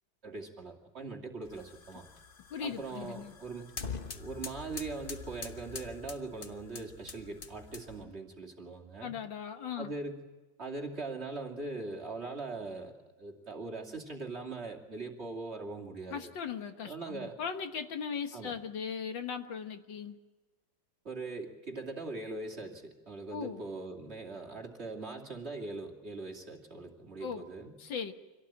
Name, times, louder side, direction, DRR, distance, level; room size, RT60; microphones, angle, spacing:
voice 1, 0.2-2.0 2.6-3.7 4.1-9.2 9.8-10.2 10.6-16.3 16.9-17.4 18.3-18.5 21.0-27.7, right 3 dB, 30° right, 1 dB, 2.9 m, -41 dB
sound 1, 1.4-8.1, left 5 dB, 35° left, 1.0 m, -45 dB
voice 2, 2.5-3.3 9.0-9.9 16.1-20.2 23.3-23.6 27.2-27.4 27.8-28.1, left 7 dB, 70° left, 7 dB, 2.0 m, -38 dB
26.0 x 17.5 x 8.9 m, 1.2 s
omnidirectional pair, 2.2 m